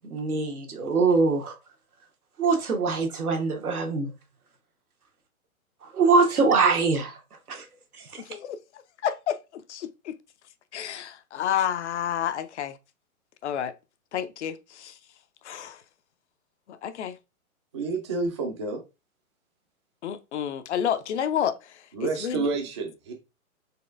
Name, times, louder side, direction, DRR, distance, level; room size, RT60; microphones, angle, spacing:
voice 1, 0.1-1.6 2.4-4.1 5.8-7.2 7.5-7.7 8.0-8.2, right 4 dB, 90° right, 1.2 m, -23 dB
voice 2, 8.2-10.2 10.7-12.8 13.4-13.7 14.1-15.0 15.4-15.8 16.7-17.2 20.0-21.9 22.2-22.5, left 9 dB, 55° left, 0.5 m, -30 dB
voice 3, 17.7-18.8 21.9-23.1, right 3 dB, 25° right, 0.3 m, -29 dB
4.2 x 3.1 x 2.4 m
hypercardioid pair, 130°, 43 cm